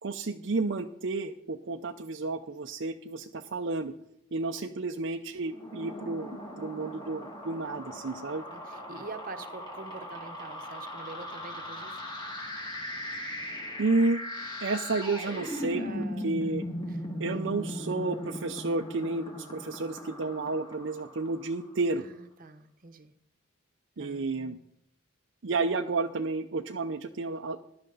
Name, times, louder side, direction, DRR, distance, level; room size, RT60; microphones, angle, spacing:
voice 1, 0.0-3.9 4.3-8.4 13.8-14.2 14.6-16.6 17.2-22.0 24.0-24.6 25.4-27.6, right 3 dB, 60° right, 5 dB, 0.6 m, -31 dB
voice 2, 4.6-5.1 8.5-12.0 15.7-16.4 16.9-17.0 17.3-17.5 22.0-23.1 24.0-24.2 25.5-25.6, right 3 dB, 40° right, 9 dB, 1.0 m, -46 dB
sound 1, 5.4-21.8, left 1 dB, 20° left, 2.2 m, -39 dB
14.5 x 11.5 x 4.0 m, 0.73 s
head